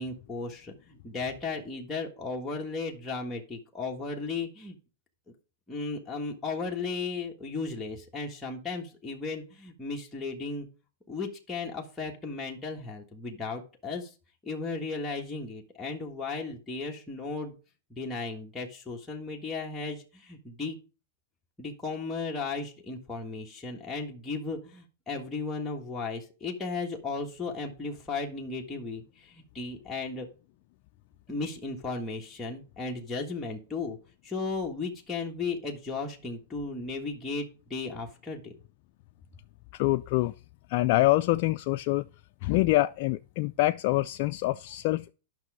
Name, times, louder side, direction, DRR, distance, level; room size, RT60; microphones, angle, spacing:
voice 1, 0.0-4.7 5.7-10.7 11.1-14.1 14.4-17.5 17.9-20.8 21.6-30.3 31.3-34.0 34.2-38.5, left 4 dB, 10° left, 1.5 m, -35 dB
voice 2, 39.7-40.3 40.7-42.1 42.4-45.1, left 18 dB, 55° left, 0.3 m, -25 dB
9.7 x 6.0 x 4.8 m
hypercardioid pair, 130°, 0 cm